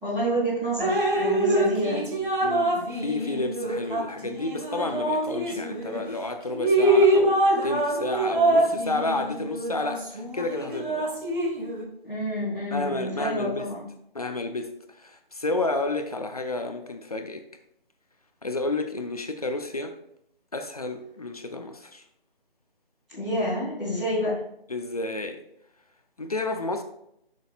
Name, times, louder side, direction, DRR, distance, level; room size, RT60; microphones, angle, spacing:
voice 1, 0.0-2.1 3.6-3.7 12.0-13.8 23.1-24.4, equal, ahead, -16 dB, 0.7 m, -28 dB
Drip, 0.8-6.0 6.5-11.8, right 1 dB, 55° right, 1.8 m, -24 dB
voice 2, 2.4-11.1 12.7-13.7 14.1-14.7 15.0-17.4 18.4-19.9 20.5-22.0 24.7-25.4 26.2-26.8, left 2 dB, 40° left, 6 dB, 0.7 m, -31 dB
11.0 x 6.4 x 2.4 m, 0.75 s
figure-of-eight pair, 155°, 30 cm